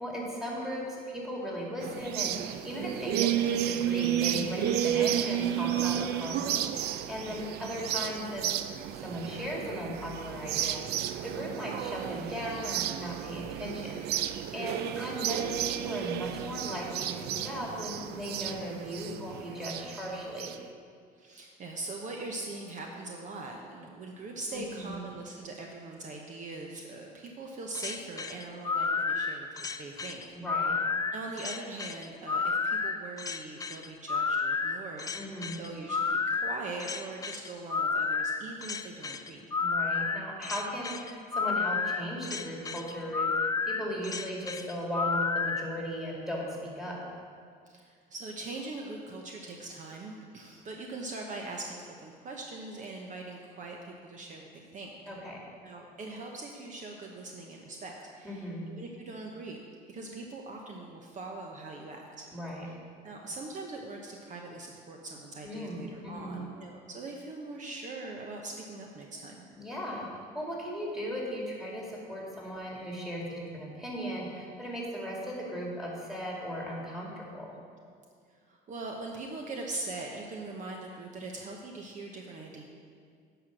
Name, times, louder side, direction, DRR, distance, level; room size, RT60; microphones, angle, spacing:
voice 1, 0.0-8.5 8.9-20.5 24.5-25.0 30.3-30.8 35.1-35.6 39.6-47.1 55.1-55.5 58.2-58.7 62.3-62.7 65.4-66.4 69.5-77.5, equal, 5° right, -3 dB, 2.4 m, -37 dB
sound 1, 1.8-20.6, right 11 dB, 75° right, 0.4 m, -32 dB
voice 2, 14.5-14.9 21.2-30.2 30.5-30.8 31.1-39.4 47.7-55.1 55.6-62.3 63.0-69.4 78.5-82.6, right 2 dB, 50° right, 1 dB, 0.9 m, -42 dB
sound 2, 27.7-45.6, left 4 dB, 20° left, 0.4 m, -31 dB
10.0 x 5.0 x 6.2 m, 2.1 s
cardioid pair, 110°, 17 cm